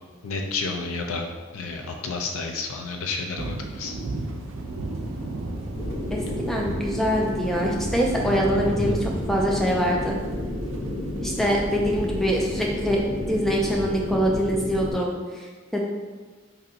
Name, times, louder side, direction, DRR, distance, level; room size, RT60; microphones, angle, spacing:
voice 1, 0.2-1.3 1.5-3.9, left 4 dB, 90° left, 3 dB, 0.4 m, -30 dB
sound 1, 3.4-13.5, right 2 dB, 70° right, 0.5 m, -35 dB
sound 2, 5.7-14.9, left 1 dB, 55° left, 0.7 m, -31 dB
voice 2, 6.5-10.2 11.2-13.0 13.3-15.8, equal, ahead, -2 dB, 0.3 m, -24 dB
3.9 x 2.7 x 2.5 m, 1.4 s
head